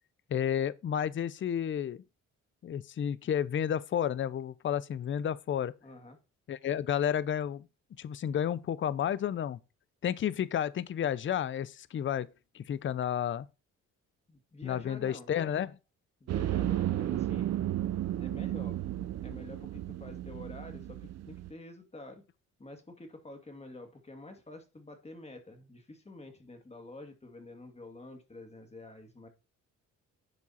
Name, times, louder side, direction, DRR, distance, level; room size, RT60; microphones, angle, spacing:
voice 1, 0.3-2.0 2.6-5.7 6.5-7.7 8.0-9.6 10.0-12.3 12.5-13.5 14.6-15.8, left 9 dB, 40° left, 0.6 m, -31 dB
voice 2, 5.8-6.2 14.3-15.3 16.2-17.5 18.2-18.8 19.2-22.2 22.6-29.3, left 2 dB, 20° left, 2.3 m, -48 dB
sound 1, 16.3-21.5, right 13 dB, 60° right, 0.6 m, -33 dB
11.0 x 4.7 x 4.3 m
cardioid pair, 90°, 30 cm